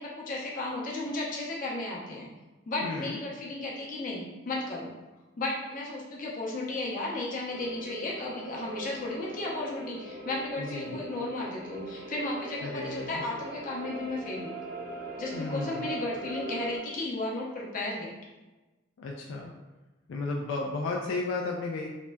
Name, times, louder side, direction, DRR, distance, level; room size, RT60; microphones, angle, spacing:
voice 1, 0.0-2.3 2.7-4.9 5.4-14.6 15.2-18.1, left 2 dB, 45° left, -4 dB, 0.6 m, -34 dB
voice 2, 2.8-3.2 10.6-11.0 12.6-13.2 15.3-15.9 19.0-19.5 20.1-21.9, left 3 dB, 80° left, 0 dB, 0.3 m, -33 dB
sound 1, 7.5-16.8, right 2 dB, 50° right, 0.4 m, -41 dB
3.7 x 2.1 x 2.2 m, 1.1 s
head